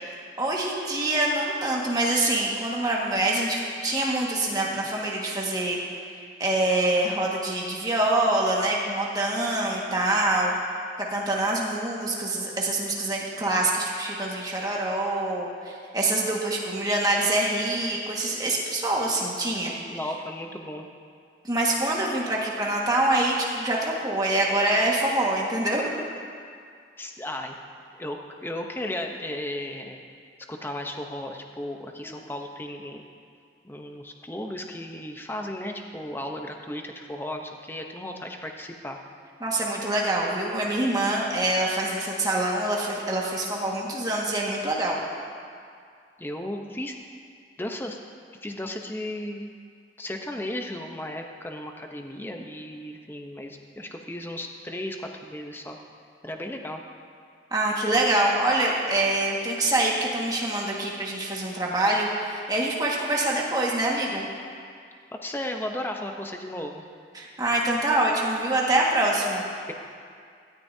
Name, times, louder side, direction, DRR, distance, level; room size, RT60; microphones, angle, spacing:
voice 1, 0.0-5.8 6.4-10.5 11.1-19.7 21.4-25.9 32.0-32.1 39.4-45.0 57.5-64.3 67.1-69.4, right 2 dB, 20° right, -3 dB, 1.7 m, -25 dB
voice 2, 19.9-20.8 27.0-27.5 27.9-30.0 30.5-33.0 33.6-39.0 46.2-46.9 47.6-48.0 48.4-49.5 50.0-55.8 56.2-56.8 65.1-66.8, left 1 dB, 10° left, 3 dB, 0.8 m, -35 dB
17.0 x 13.0 x 2.8 m, 2.2 s
head